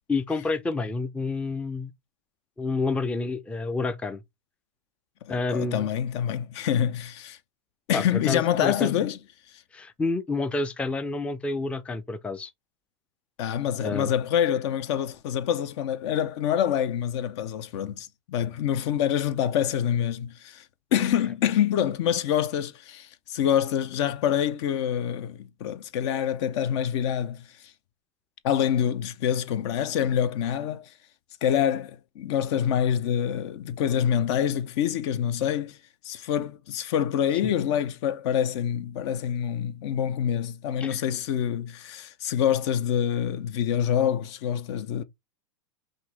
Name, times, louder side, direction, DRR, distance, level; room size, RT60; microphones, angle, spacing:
voice 1, 0.1-1.9 2.6-4.2 5.3-5.9 7.9-8.9 9.7-12.5 13.8-14.1 40.8-41.0, left 3 dB, 5° left, 0.4 m, -29 dB
voice 2, 5.2-7.4 7.9-9.2 13.4-20.6 20.9-27.5 28.4-30.9 31.4-35.8 36.0-45.0, left 9 dB, 60° left, 0.6 m, -26 dB
5.5 x 2.7 x 3.2 m
hypercardioid pair, 115°, 17 cm